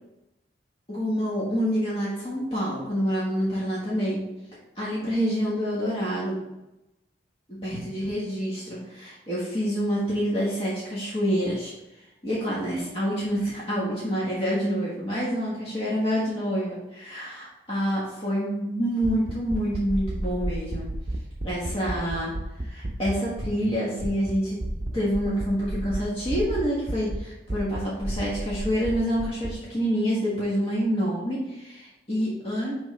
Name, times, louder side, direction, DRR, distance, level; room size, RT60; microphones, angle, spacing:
voice 1, 0.9-4.2 4.7-6.4 7.5-11.7 12.2-20.9 21.4-22.3 22.6-24.6 24.9-32.7, equal, 30° left, -8 dB, 1.5 m, -27 dB
sound 1, 19.0-23.7 24.0-24.3 24.6-27.2 27.5-29.5, right 1 dB, 30° right, 0.7 m, -31 dB
8.6 x 3.6 x 3.3 m, 0.95 s
head